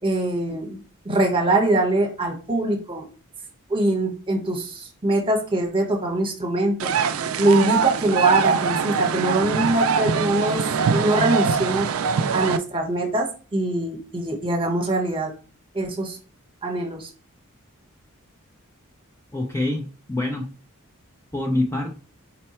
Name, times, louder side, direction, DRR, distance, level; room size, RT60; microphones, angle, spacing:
voice 1, 0.0-3.0 3.7-6.9 7.4-10.6 10.9-11.9 12.3-13.3 13.5-15.3 15.7-16.2 16.6-17.1, right 2 dB, 25° right, 0 dB, 1.1 m, -23 dB
sound 1, 6.8-12.6, right 6 dB, 70° right, 0.4 m, -23 dB
voice 2, 19.3-20.5 21.3-21.9, left 2 dB, 15° left, 0 dB, 0.5 m, -25 dB
4.3 x 2.2 x 4.3 m, 0.36 s
head